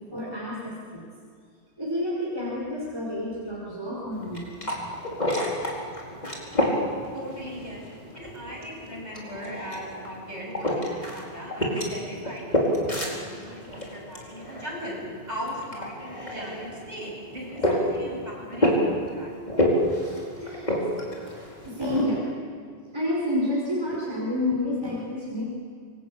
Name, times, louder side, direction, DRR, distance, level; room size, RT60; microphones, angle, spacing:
voice 1, 0.1-1.1 1.8-4.5 20.4-20.7 21.7-22.2 22.9-25.6, left 1 dB, 20° right, -5 dB, 5.1 m, -29 dB
sound 1, 4.1-22.0, equal, 40° left, 4.8 m, -29 dB
voice 2, 6.9-7.8 8.1-15.0 15.3-19.3, equal, 40° right, -3 dB, 8.3 m, -38 dB
27.0 x 23.5 x 8.7 m, 2.1 s
omnidirectional pair, 1.1 m